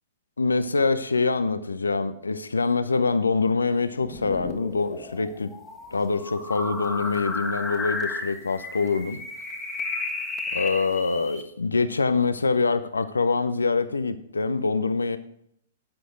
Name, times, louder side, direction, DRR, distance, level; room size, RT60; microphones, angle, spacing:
voice 1, 0.4-5.5 5.9-9.2 10.5-15.2, left 4 dB, 75° left, 12 dB, 0.8 m, -25 dB
sound 1, 4.0-11.4, left 3 dB, 10° left, 1.7 m, -33 dB
11.5 x 9.9 x 3.9 m, 0.70 s
figure-of-eight pair, 110°, 0 cm